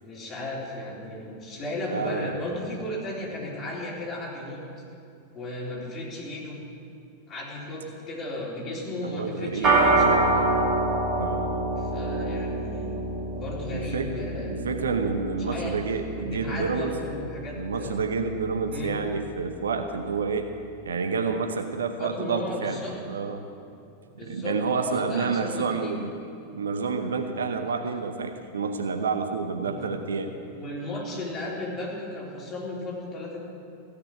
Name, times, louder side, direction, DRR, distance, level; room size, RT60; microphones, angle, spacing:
voice 1, 0.0-4.6 5.3-6.6 7.3-10.5 11.8-12.9 13.4-14.6 15.4-15.8 16.1-17.9 18.7-18.9 22.0-22.9 24.2-26.0 27.7-27.9 29.6-29.8 30.5-33.4, left 1 dB, 25° left, -5 dB, 3.9 m, -35 dB
voice 2, 1.9-2.4 9.0-9.8 11.2-11.5 13.7-14.2 14.5-16.9 17.5-20.5 20.8-22.8 23.1-23.5 24.3-26.1 26.5-30.3, right 5 dB, 70° right, 6 dB, 0.9 m, -29 dB
sound 1, 9.6-19.2, right 2 dB, 35° right, 2.7 m, -27 dB
15.5 x 6.8 x 9.3 m, 2.5 s
figure-of-eight pair, 90°, 0 cm